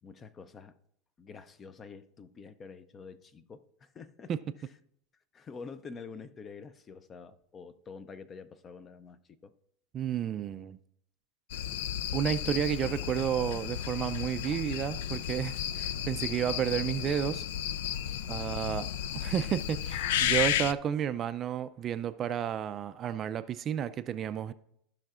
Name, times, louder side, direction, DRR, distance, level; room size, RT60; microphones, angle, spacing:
voice 1, 0.0-0.8 1.2-4.3 5.3-9.5 18.0-18.6, left 5 dB, 25° left, 0.5 m, -47 dB
voice 2, 9.9-10.8 12.1-17.5 18.3-18.9 19.1-24.5, right 9 dB, 30° right, 0.4 m, -31 dB
sound 1, 11.5-20.7, left 10 dB, 75° left, 0.3 m, -33 dB
15.5 x 5.7 x 2.4 m
supercardioid pair, 135°, 0 cm